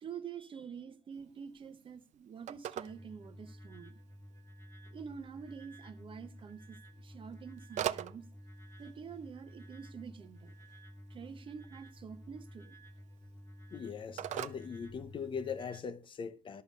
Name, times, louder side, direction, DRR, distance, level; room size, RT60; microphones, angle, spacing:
voice 1, 0.0-4.0 4.9-8.3 8.8-10.5 11.1-12.7, right 6 dB, 40° right, 0.9 m, -47 dB
Telephone, 1.1-15.6, right 11 dB, 60° right, 0.6 m, -46 dB
sound 1, 2.9-15.8, equal, 20° left, 1.1 m, -53 dB
voice 2, 13.7-16.6, left 6 dB, 40° left, 0.7 m, -40 dB
11.5 x 6.6 x 5.4 m
cardioid pair, 145°, 13 cm